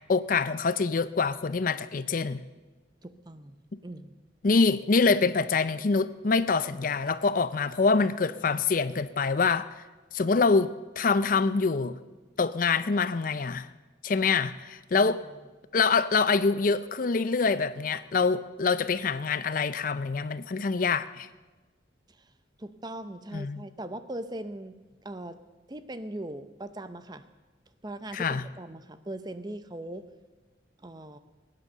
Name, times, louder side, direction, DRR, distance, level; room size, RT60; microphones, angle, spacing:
voice 1, 0.1-2.4 4.4-9.7 10.1-12.0 12.4-13.7 14.0-15.2 15.7-21.3 23.3-23.6 28.1-28.4, left 4 dB, 45° left, 14 dB, 0.5 m, -25 dB
voice 2, 3.0-3.6 3.8-4.1 14.9-15.1 22.1-22.3 22.6-25.4 25.7-27.3 27.8-30.1 30.8-31.2, right 1 dB, 20° right, 11 dB, 0.7 m, -40 dB
21.5 x 9.9 x 6.8 m, 1.3 s
head